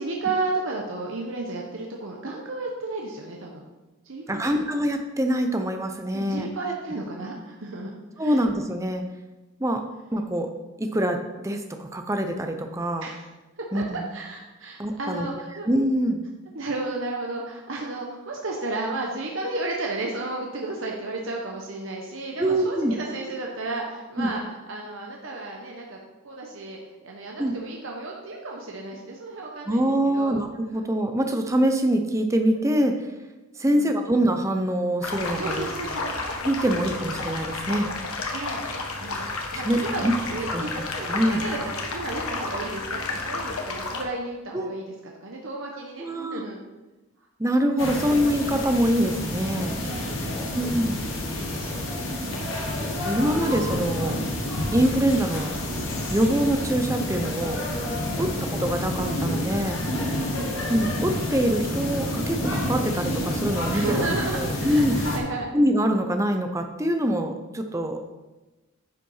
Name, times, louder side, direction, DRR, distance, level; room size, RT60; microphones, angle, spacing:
voice 1, 0.0-3.6 4.0-4.6 6.1-8.4 13.0-13.3 13.6-15.7 16.5-26.0 26.2-30.4 33.7-34.1 35.4-36.2 38.3-38.6 39.0-44.9 45.2-46.6 48.0-48.1 50.0-50.5 51.5-51.9 52.2-52.7 58.1-58.4 60.1-60.6 63.7-65.5, right 2 dB, 65° right, -1 dB, 1.1 m, -33 dB
voice 2, 4.3-6.5 8.2-9.0 9.6-9.8 10.1-10.5 10.8-13.1 13.7-14.0 14.8-15.3 15.7-16.2 22.4-23.0 24.2-24.3 27.4-27.5 29.7-33.1 33.6-35.7 36.4-37.9 39.5-40.1 40.5-40.6 41.0-41.4 44.5-44.7 46.0-46.4 47.4-49.7 50.5-51.0 53.0-54.2 54.7-55.6 56.1-57.6 58.2-59.8 60.7-63.8 64.3-65.0 65.5-68.0, equal, 15° right, 5 dB, 0.7 m, -24 dB
sound 1, 35.0-44.0, left 3 dB, 85° left, 1.5 m, -31 dB
sound 2, 47.8-65.2, left 1 dB, 65° left, 2.2 m, -29 dB
10.0 x 5.8 x 5.6 m, 1.1 s
head